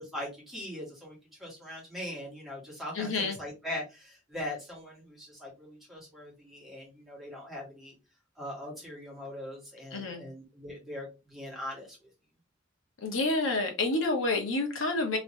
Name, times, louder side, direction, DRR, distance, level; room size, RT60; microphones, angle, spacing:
voice 1, 0.0-8.0 8.4-12.1, left 1 dB, ahead, -5 dB, 1.7 m, -41 dB
voice 2, 2.9-3.4 9.9-10.2 13.0-15.2, left 2 dB, 80° left, 3 dB, 1.1 m, -29 dB
3.1 x 3.1 x 2.8 m, 0.28 s
head